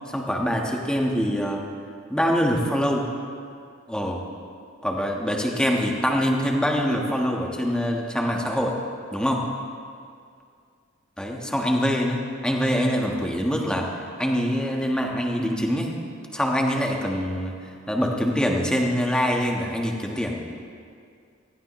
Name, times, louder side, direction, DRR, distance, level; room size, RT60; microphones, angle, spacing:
voice 1, 0.1-1.6 2.1-3.1 3.9-4.2 4.8-8.8 9.1-9.4 11.2-13.9 14.2-15.9 16.3-17.6 17.9-20.4, equal, 5° left, 0 dB, 1.4 m, -24 dB
19.5 x 15.0 x 3.2 m, 2.3 s
head